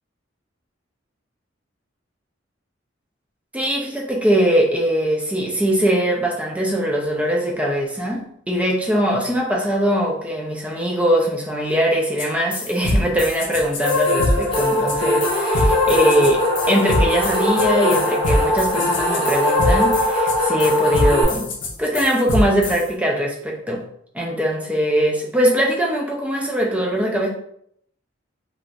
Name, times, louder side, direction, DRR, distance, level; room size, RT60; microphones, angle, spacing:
voice 1, 3.5-21.5 21.8-23.8 24.1-27.3, equal, 5° right, -1 dB, 0.4 m, -21 dB
sound 1, 12.2-12.3 12.5-22.8, left 1 dB, 65° left, 0.7 m, -23 dB
sound 2, 13.8-21.2, left 1 dB, 25° left, 0.9 m, -20 dB
2.5 x 2.4 x 3.2 m, 0.70 s
head